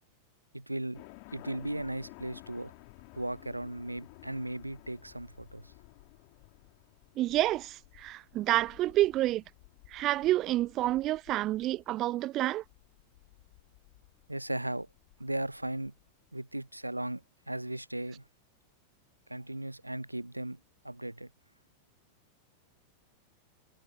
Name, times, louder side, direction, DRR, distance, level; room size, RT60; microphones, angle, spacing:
voice 1, 0.5-1.0 1.3-2.7 3.1-5.7 14.3-14.9 15.2-15.9 16.3-18.2 19.3-21.3, right 1 dB, 85° right, 0.6 m, -37 dB
sound 1, 0.9-16.1, left 35 dB, 45° left, 3.7 m, -55 dB
voice 2, 7.2-9.4 9.9-12.6, right 15 dB, 35° right, 0.3 m, -29 dB
figure-of-eight pair, 90°, 0 cm